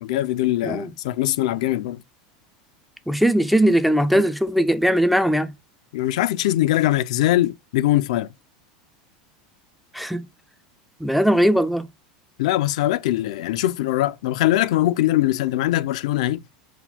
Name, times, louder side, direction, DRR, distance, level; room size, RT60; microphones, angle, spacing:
voice 1, 0.0-2.0 5.9-8.3 12.4-16.4, left 15 dB, 80° left, 0.3 m, -22 dB
voice 2, 3.1-5.5 9.9-10.2 11.0-11.9, equal, ahead, 0.3 m, -19 dB
4.2 x 2.2 x 4.1 m
supercardioid pair, 160°, 4 cm